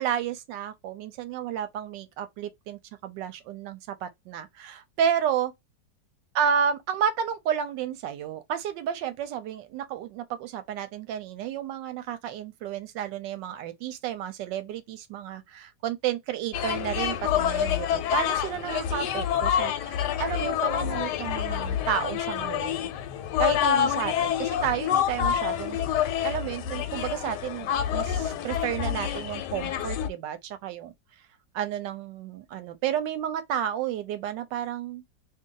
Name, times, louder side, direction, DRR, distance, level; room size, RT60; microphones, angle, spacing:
voice 1, 0.0-5.5 6.3-22.9 23.4-30.9 31.5-35.0, right 9 dB, 90° right, 1.3 m, -31 dB
sound 1, 16.5-30.1, left 10 dB, 75° left, 1.1 m, -27 dB
2.7 x 2.6 x 3.7 m
omnidirectional pair, 1.9 m